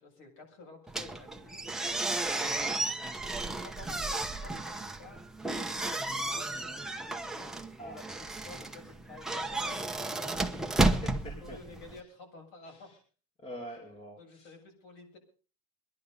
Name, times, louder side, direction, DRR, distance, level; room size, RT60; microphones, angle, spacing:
voice 1, 0.0-1.7 2.3-2.6 3.5-7.4 7.8-8.1 8.4-10.7 11.3-12.9 14.2-15.2, left 3 dB, 65° left, 2 dB, 7.9 m, -51 dB
sound 1, 0.9-12.0, right 2 dB, ahead, 0.9 m, -33 dB
voice 2, 10.4-11.6 11.9-12.1 12.6-13.0 13.4-14.5, equal, 25° left, 2 dB, 2.9 m, -45 dB
23.5 x 11.0 x 5.6 m, 0.39 s
cardioid pair, 165°, 20 cm